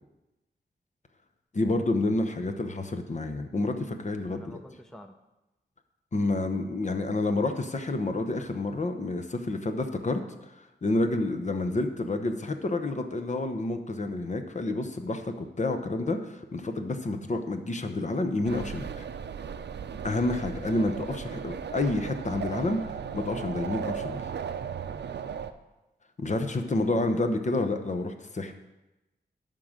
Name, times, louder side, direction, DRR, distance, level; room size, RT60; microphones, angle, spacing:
voice 1, 1.5-4.6 6.1-10.2 10.8-19.1 20.0-24.2 26.2-28.5, left 2 dB, 40° left, 6 dB, 0.9 m, -29 dB
voice 2, 4.3-5.2 26.6-26.9, equal, 5° left, 6 dB, 0.6 m, -48 dB
sound 1, 18.4-25.5, right 7 dB, 75° right, 0.5 m, -36 dB
11.5 x 3.8 x 7.3 m, 1.0 s
wide cardioid pair, 85°, 18 cm